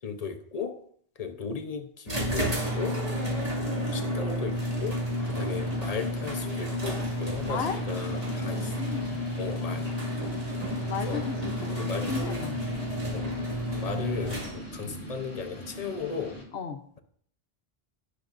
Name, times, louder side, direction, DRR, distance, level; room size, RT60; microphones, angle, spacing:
voice 1, 0.0-0.8 1.2-3.0 3.8-8.7 9.4-9.9 10.2-10.3 11.1-11.2 11.8-12.5 13.1-13.4 13.7-16.4, left 5 dB, 40° left, 6 dB, 0.8 m, -36 dB
mechanical garage door opening near miked long creak quad, 2.1-14.9, equal, 35° right, 2.3 m, -31 dB
sound 1, 4.5-16.4, equal, 15° left, 2.3 m, -42 dB
voice 2, 7.4-7.8 8.4-9.2 9.5-9.9 10.9-12.6 16.5-16.8, left 6 dB, 75° left, 7 dB, 1.1 m, -35 dB
17.5 x 6.0 x 2.6 m, 0.62 s
omnidirectional pair, 1.1 m